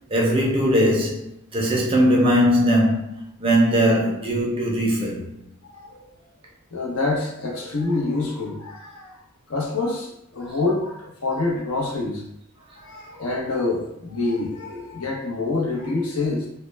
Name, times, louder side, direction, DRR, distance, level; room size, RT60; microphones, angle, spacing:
voice 1, 0.1-1.2 1.5-3.1 3.4-5.2, equal, 25° right, 0.4 m, -19 dB
voice 2, 5.7-6.0 6.7-9.2 9.5-12.2 12.8-16.5, left 3 dB, 75° left, 0.6 m, -26 dB
2.1 x 2.0 x 3.1 m
head